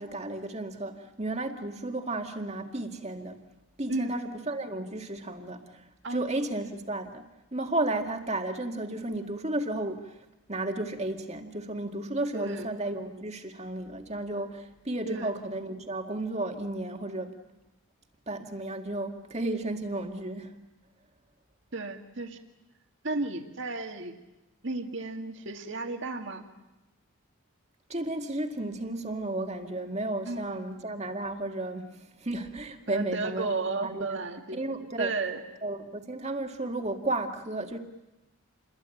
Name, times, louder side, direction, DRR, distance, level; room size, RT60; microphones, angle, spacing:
voice 1, 0.0-3.4 3.8-7.2 7.5-10.2 10.5-17.4 18.3-20.6 27.9-33.5 33.8-34.2 34.5-35.1 35.6-37.8, right 2 dB, 30° right, 5 dB, 2.0 m, -33 dB
voice 2, 12.3-12.7 15.1-15.3 21.7-22.4 23.0-24.1 24.6-26.4 30.3-30.4 32.9-34.6 35.0-35.4, right 3 dB, 55° right, 5 dB, 2.1 m, -33 dB
29.0 x 22.0 x 9.2 m, 0.99 s
head